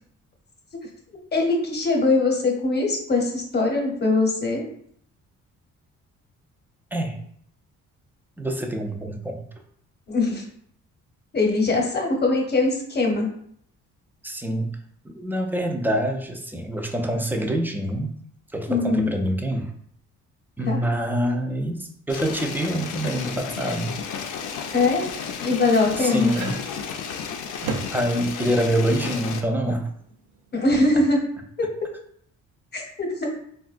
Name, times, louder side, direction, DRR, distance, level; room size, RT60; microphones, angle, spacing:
voice 1, 1.3-4.7 10.1-10.4 11.3-13.3 18.7-19.1 20.7-20.8 24.7-25.0 25.4-26.3 30.5-31.2 31.6-31.7 32.7-33.4, left 3 dB, 35° left, 0 dB, 0.8 m, -22 dB
voice 2, 6.9-7.2 8.4-9.5 14.2-14.8 15.0-18.2 18.5-19.7 20.6-24.0 26.0-26.6 27.9-29.9, right 1 dB, 5° right, 3 dB, 0.3 m, -26 dB
sound 1, 22.1-29.4, left 7 dB, 80° left, 0.5 m, -33 dB
sound 2, 25.9-31.0, right 4 dB, 85° right, 0.5 m, -36 dB
3.6 x 2.2 x 2.4 m, 0.65 s
cardioid pair, 90°, 30 cm